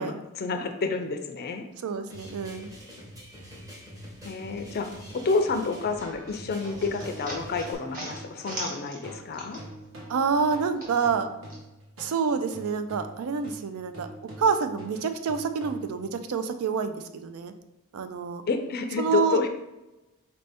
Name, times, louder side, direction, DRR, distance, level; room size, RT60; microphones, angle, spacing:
voice 1, 0.0-1.6 4.2-9.6 18.5-19.5, left 4 dB, 45° left, 6 dB, 0.4 m, -29 dB
voice 2, 1.8-2.7 10.1-11.3 12.0-14.1 14.4-17.5 17.9-18.4 19.0-19.4, right 5 dB, 85° right, 9 dB, 0.4 m, -27 dB
sound 1, 2.1-7.7, equal, 15° right, 0.8 m, -45 dB
sound 2, 6.3-9.9 10.2-11.6, right 1 dB, 45° right, 1.2 m, -41 dB
sound 3, 6.5-12.2 12.5-16.1, right 1 dB, 65° right, 1.1 m, -45 dB
4.2 x 2.6 x 3.4 m, 0.97 s
head